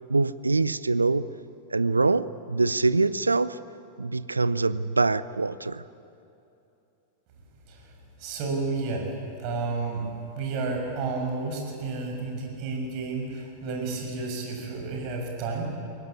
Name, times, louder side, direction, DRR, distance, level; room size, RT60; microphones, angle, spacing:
voice 1, 0.1-1.3 1.7-3.6 4.0-5.8, right 3 dB, 80° right, 16 dB, 0.6 m, -24 dB
voice 2, 8.2-9.1 9.4-10.1 10.3-15.7, right 3 dB, 45° right, 1 dB, 6.4 m, -31 dB
23.0 x 18.5 x 9.7 m, 2.7 s
figure-of-eight pair, 90°, 0 cm